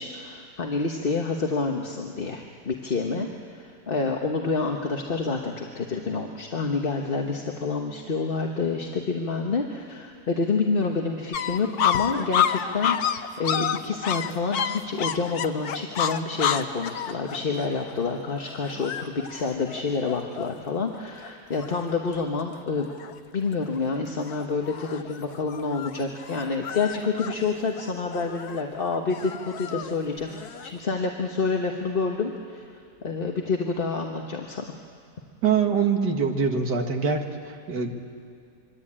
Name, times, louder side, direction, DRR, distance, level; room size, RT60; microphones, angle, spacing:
voice 1, 0.0-22.9 23.3-32.7 33.0-34.6, left 4 dB, 35° left, 2 dB, 1.3 m, -28 dB
sound 1, 11.3-20.8 21.2-21.3 21.5-22.2 22.5-23.1 23.6-23.9 24.3-30.8, left 8 dB, 65° left, 1.4 m, -30 dB
voice 2, 35.4-37.9, right 6 dB, 75° right, 4 dB, 2.4 m, -24 dB
26.0 x 23.5 x 8.8 m, 2.3 s
omnidirectional pair, 1.8 m